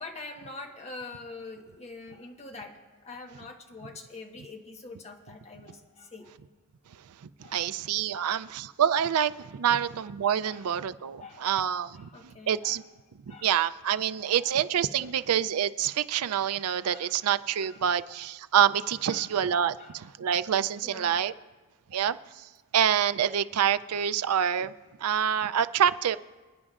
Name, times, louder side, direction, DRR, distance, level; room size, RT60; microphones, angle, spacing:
voice 1, 0.0-6.3 7.4-7.6 8.1-8.4 9.6-9.8 10.4-10.6 11.2-11.5 11.9-12.8 13.3-13.5 14.2-14.5 14.9-15.1 16.9-17.1 17.6-18.2 19.0-19.3 19.7-19.9 20.2-20.3 20.8-21.2 21.9-22.1, left 3 dB, 30° left, 1.2 m, -45 dB
voice 2, 7.5-12.8 13.3-21.3 21.9-24.7 25.0-26.2, right 9 dB, 85° right, 0.4 m, -27 dB
27.5 x 9.7 x 2.4 m
head